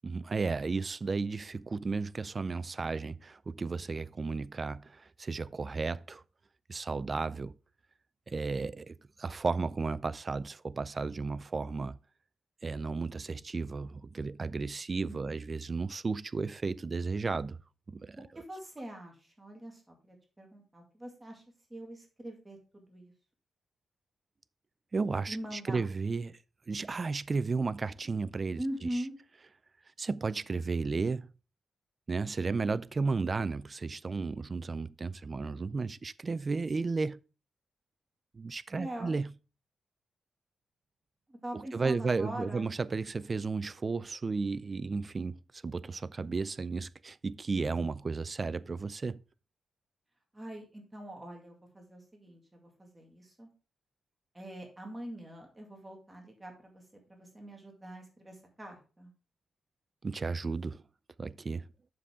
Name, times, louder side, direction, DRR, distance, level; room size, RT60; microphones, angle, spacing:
voice 1, 0.0-6.2 6.7-7.6 8.3-12.0 12.6-17.6 17.9-18.3 24.9-26.4 26.7-28.6 30.0-31.3 32.1-37.2 38.3-39.3 41.5-49.2 60.0-60.8 61.2-61.7, right 4 dB, 30° right, 0.3 m, -33 dB
voice 2, 18.3-21.4 21.7-23.1 25.3-25.8 28.6-29.1 38.7-39.2 41.3-42.7 50.3-53.5 54.3-56.8 57.1-59.1, right 1 dB, 15° right, 2.2 m, -43 dB
7.7 x 6.8 x 3.6 m
wide cardioid pair, 135°, 0 cm